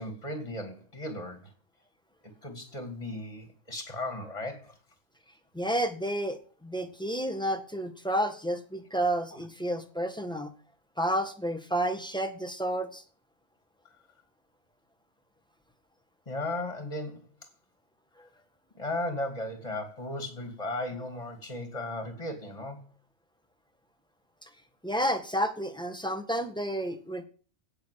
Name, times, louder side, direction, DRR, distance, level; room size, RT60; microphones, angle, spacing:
voice 1, 0.0-1.5 2.2-4.8 9.3-9.5 16.3-17.3 18.7-22.8, left 1 dB, 30° left, 5 dB, 2.5 m, -36 dB
voice 2, 5.5-10.5 11.0-13.0 24.4-24.5 24.8-27.2, equal, 5° left, 7 dB, 1.7 m, -30 dB
17.0 x 6.5 x 8.4 m, 0.40 s
omnidirectional pair, 1.2 m